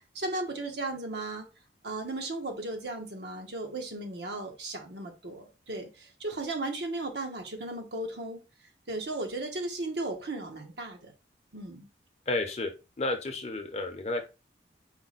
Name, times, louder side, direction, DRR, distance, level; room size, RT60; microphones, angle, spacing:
voice 1, 0.0-1.5 1.8-8.4 8.9-11.1 11.5-11.9, right 2 dB, 70° right, 4 dB, 1.0 m, -36 dB
voice 2, 12.3-12.7 13.0-14.2, left 2 dB, 35° left, 5 dB, 0.6 m, -31 dB
4.4 x 2.2 x 4.0 m, 0.29 s
head